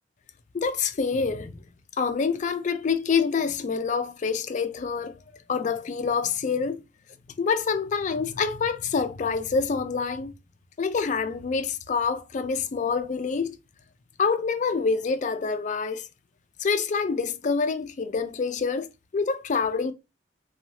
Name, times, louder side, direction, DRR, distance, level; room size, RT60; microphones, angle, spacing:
voice 1, 0.5-1.6 2.0-5.2 5.5-6.8 7.4-10.3 10.8-13.6 14.2-16.1 16.6-18.9 19.1-19.9, left 5 dB, 40° left, 0.4 m, -26 dB
3.0 x 2.3 x 2.7 m
head